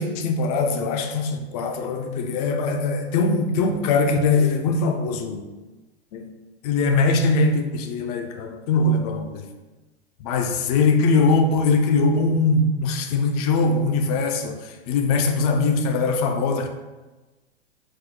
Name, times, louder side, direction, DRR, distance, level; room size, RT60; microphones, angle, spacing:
voice 1, 0.0-5.4 6.1-6.3 6.6-9.5 10.2-16.7, left 3 dB, 40° left, 5 dB, 0.4 m, -21 dB
4.2 x 2.0 x 2.8 m, 1.2 s
hypercardioid pair, 110°, 33 cm